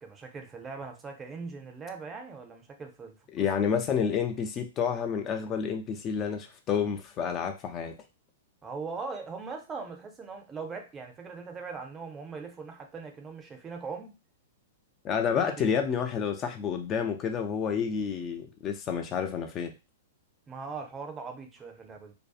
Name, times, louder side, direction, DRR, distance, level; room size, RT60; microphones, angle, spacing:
voice 1, 0.0-3.5 8.6-14.2 15.3-15.8 20.5-22.1, right 4 dB, 20° right, 4 dB, 0.5 m, -40 dB
voice 2, 3.3-7.9 15.0-19.7, left 7 dB, 30° left, 5 dB, 0.3 m, -29 dB
2.6 x 2.2 x 2.4 m, 0.28 s
figure-of-eight pair, 105°, 0 cm